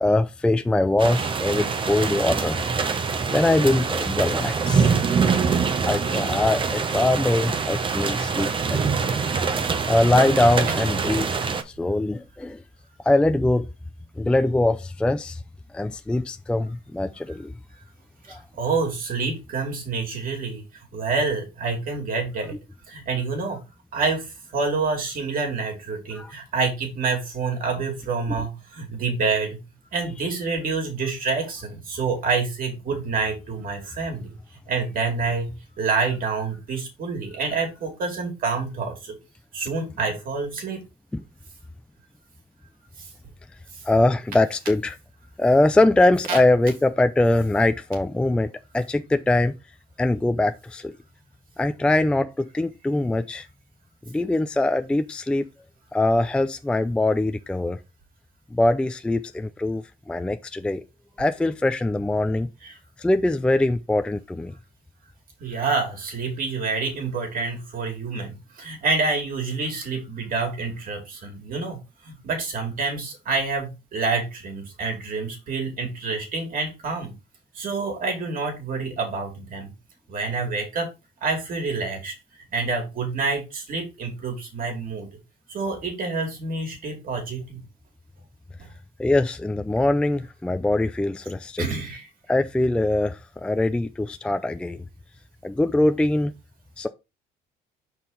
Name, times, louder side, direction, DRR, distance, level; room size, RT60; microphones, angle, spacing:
voice 1, 0.0-2.6 3.3-4.9 5.8-9.1 9.9-11.4 11.7-12.6 13.0-13.7 14.2-15.4 15.7-17.5 18.3-18.4 26.1-26.3 28.4-28.5 41.1-41.2 43.8-45.0 45.4-49.5 50.0-50.9 51.6-53.5 54.1-55.5 55.9-57.8 58.5-60.8 61.2-62.5 63.0-64.5 89.0-91.7 92.3-94.8 95.4-96.3 96.8-96.9, left 2 dB, 5° left, 0.4 m, -22 dB
sound 1, 1.0-11.6, right 5 dB, 30° right, 0.8 m, -24 dB
voice 2, 18.3-20.6 20.9-22.6 22.9-23.6 23.9-29.6 29.9-34.3 34.7-35.5 35.8-39.1 39.5-40.8 43.0-43.1 43.7-43.8 46.3-46.4 62.6-62.8 65.4-71.8 72.0-77.1 77.5-79.7 80.1-80.9 81.2-82.1 82.5-85.1 85.5-87.6 88.6-88.7 91.6-92.1, right 4 dB, 55° right, 2.6 m, -27 dB
5.7 x 4.4 x 3.9 m
cardioid pair, 110°, 17 cm